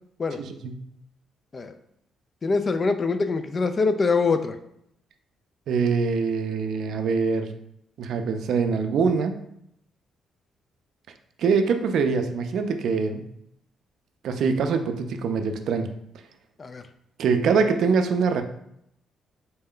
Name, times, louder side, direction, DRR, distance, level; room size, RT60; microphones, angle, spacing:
voice 1, 0.4-0.8 5.7-7.5 8.0-9.4 11.4-13.2 14.2-15.9 17.2-18.4, right 5 dB, 70° right, 7 dB, 0.4 m, -24 dB
voice 2, 2.4-4.6 16.6-16.8, left 4 dB, 35° left, 9 dB, 0.3 m, -24 dB
4.1 x 2.2 x 3.7 m, 0.76 s
cardioid pair, 90°, 0 cm